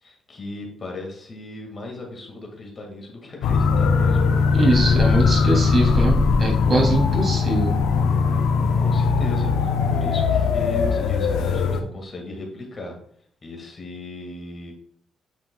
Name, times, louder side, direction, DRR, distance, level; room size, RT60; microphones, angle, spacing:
voice 1, 0.0-4.4 4.8-5.9 8.8-13.0 13.4-14.7, left 2 dB, 40° left, 1 dB, 1.9 m, -36 dB
sound 1, 3.4-11.8, left 5 dB, 85° left, 0.7 m, -20 dB
voice 2, 4.5-7.8, right 2 dB, 40° right, -2 dB, 2.8 m, -23 dB
9.0 x 5.2 x 2.3 m, 0.63 s
cardioid pair, 90°, 0 cm